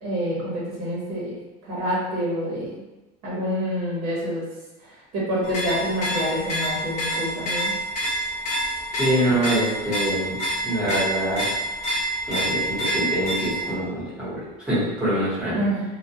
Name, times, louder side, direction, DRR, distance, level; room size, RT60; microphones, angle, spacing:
voice 1, 0.0-1.3 1.6-2.7 3.2-4.4 5.1-7.7 15.6-15.8, equal, 45° right, -7 dB, 0.8 m, -27 dB
sound 1, 5.4-13.7, equal, 40° left, 0.6 m, -27 dB
voice 2, 8.9-10.3 10.6-11.4 12.3-14.4 14.7-15.6, right 1 dB, 5° right, -12 dB, 0.9 m, -24 dB
2.2 x 2.1 x 2.7 m, 1.1 s
cardioid pair, 175°, 20 cm